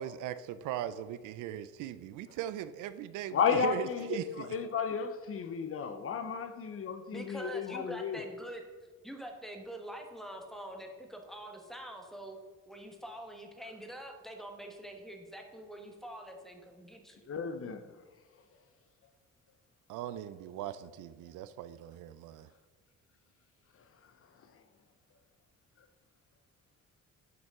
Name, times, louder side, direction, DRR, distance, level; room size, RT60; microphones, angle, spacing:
voice 1, 0.0-4.5 19.9-22.5, right 11 dB, 90° right, 0.5 m, -39 dB
voice 2, 3.3-8.3 17.3-17.8, left 6 dB, 45° left, 0.7 m, -33 dB
voice 3, 7.1-8.6 9.0-12.4 12.7-17.3, right 1 dB, ahead, 1.2 m, -45 dB
9.3 x 5.3 x 3.6 m
cardioid pair, 90°, 30 cm